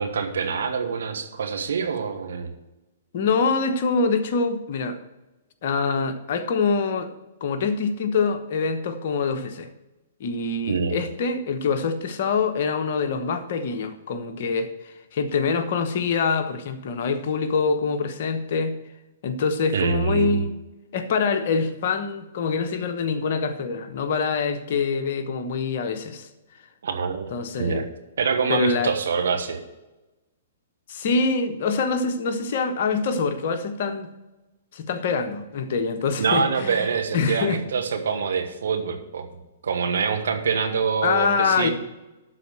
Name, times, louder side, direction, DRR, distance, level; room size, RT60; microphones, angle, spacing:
voice 1, 0.0-2.5 10.7-11.0 19.7-20.4 26.8-27.3 27.6-27.8 28.2-29.6 36.2-39.3 39.6-41.7, right 5 dB, 70° right, 1.4 m, -25 dB
voice 2, 3.1-5.0 5.6-7.1 7.4-9.7 10.2-18.8 19.2-20.5 20.9-26.3 27.3-27.9 28.5-28.9 30.9-34.1 34.7-36.9 37.1-37.6 41.0-41.7, left 4 dB, 55° left, 1.1 m, -25 dB
12.0 x 4.2 x 7.7 m
figure-of-eight pair, 120°, 0 cm